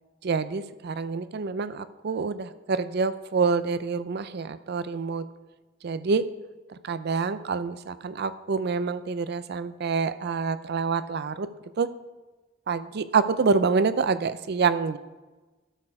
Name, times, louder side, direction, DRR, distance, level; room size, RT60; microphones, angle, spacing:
voice 1, 0.2-5.3 5.8-6.2 6.7-11.5 11.8-11.9 12.7-15.0, right 4 dB, 55° right, 14 dB, 0.5 m, -27 dB
12.5 x 6.8 x 4.9 m, 1.2 s
head